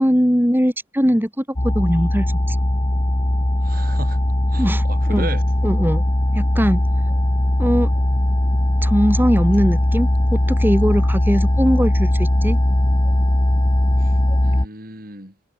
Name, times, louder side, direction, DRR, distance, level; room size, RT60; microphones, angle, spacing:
voice 1, 0.0-2.6 4.6-5.3 5.6-6.0 6.3-6.8 7.6-7.9 8.8-12.6, equal, 10° right, 7.6 m, -20 dB
sound 1, 1.6-14.7, left 1 dB, 25° left, 1.2 m, -19 dB
voice 2, 3.6-4.2 4.5-5.4 14.0-14.1 14.4-15.3, right 2 dB, 45° right, 7.9 m, -34 dB
head